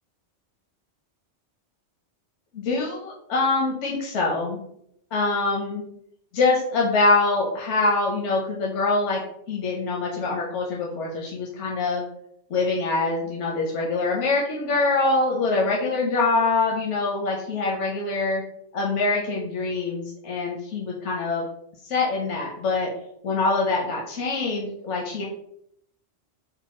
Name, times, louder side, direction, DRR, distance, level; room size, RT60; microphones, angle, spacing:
voice 1, 2.5-4.6 5.1-5.8 6.3-9.2 9.5-12.0 12.5-18.4 18.7-21.5 21.8-22.9 23.2-25.3, left 3 dB, 80° left, -2 dB, 1.1 m, -24 dB
4.0 x 2.3 x 4.2 m, 0.72 s
omnidirectional pair, 1.2 m